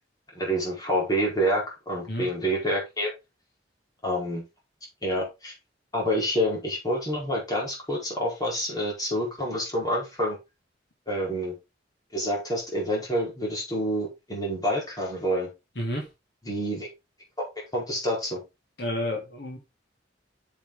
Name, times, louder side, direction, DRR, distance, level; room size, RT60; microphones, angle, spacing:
voice 1, 0.3-3.1 4.0-4.4 5.0-5.5 5.9-10.4 11.1-11.5 12.1-15.5 16.5-16.9 17.4-17.5 17.7-18.4, equal, 20° left, -3 dB, 4.6 m, -27 dB
voice 2, 15.7-16.1 18.8-19.6, left 1 dB, 65° left, -1 dB, 3.0 m, -30 dB
7.8 x 7.1 x 3.8 m, 0.24 s
head